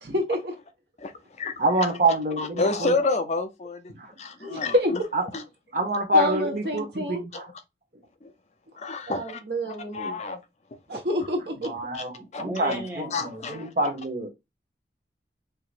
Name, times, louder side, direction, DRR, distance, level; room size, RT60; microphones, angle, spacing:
voice 1, 0.0-0.6 4.4-4.9 6.1-7.2 9.1-10.2 10.9-11.7, equal, 70° right, 1.2 m, -28 dB
voice 2, 1.6-3.0 3.9-4.1 5.1-5.2 5.7-7.5 11.6-14.3, right 1 dB, 45° right, 1.1 m, -26 dB
voice 3, 2.4-3.9 4.2-5.0 7.3-7.4 8.2-8.3 8.8-9.4 9.7-10.4 11.9-12.0 12.3-12.4 13.1-13.9, left 3 dB, 40° left, 0.5 m, -29 dB
voice 4, 12.4-13.2, right 2 dB, 10° right, 1.1 m, -34 dB
4.7 x 2.9 x 2.5 m
head